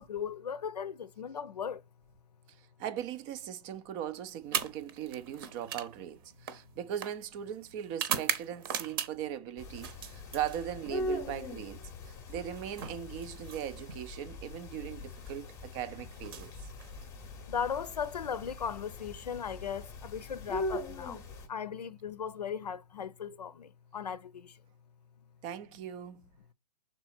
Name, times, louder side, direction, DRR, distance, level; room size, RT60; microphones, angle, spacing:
voice 1, 0.0-1.8 17.5-21.2 21.5-24.6, left 7 dB, 70° left, 0.7 m, -37 dB
voice 2, 2.8-11.8 12.1-16.5 25.4-26.3, right 10 dB, 15° right, 0.4 m, -39 dB
sound 1, 4.4-9.4 9.7-11.0 12.2-14.0 15.1-15.4 16.1-17.3, right 8 dB, 35° right, 0.8 m, -39 dB
sound 2, 9.6-21.5, left 1 dB, 15° left, 0.8 m, -41 dB
6.0 x 4.0 x 4.2 m
hypercardioid pair, 140°, 21 cm